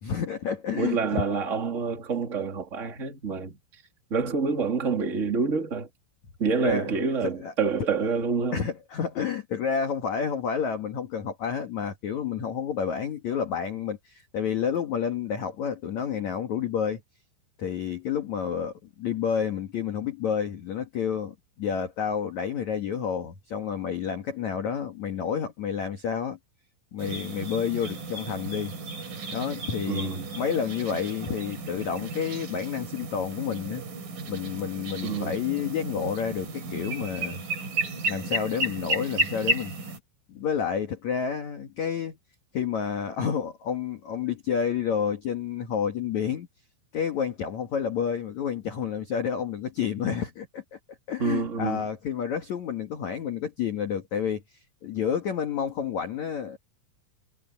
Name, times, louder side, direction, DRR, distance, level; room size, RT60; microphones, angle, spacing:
voice 1, 0.0-1.2 6.6-7.0 7.2-7.5 8.5-17.0 17.6-26.4 26.9-28.8 29.3-33.8 34.3-37.4 38.1-39.7 40.3-42.2 42.5-46.5 46.9-50.8 51.1-56.6, left 7 dB, 65° left, 1.9 m, -30 dB
voice 2, 0.7-3.6 4.1-5.9 6.4-8.6 29.9-30.2 35.0-35.4 51.2-51.8, right 5 dB, 20° right, 2.4 m, -27 dB
sound 1, 27.0-40.0, right 2 dB, 45° right, 4.9 m, -33 dB
omnidirectional pair, 5.8 m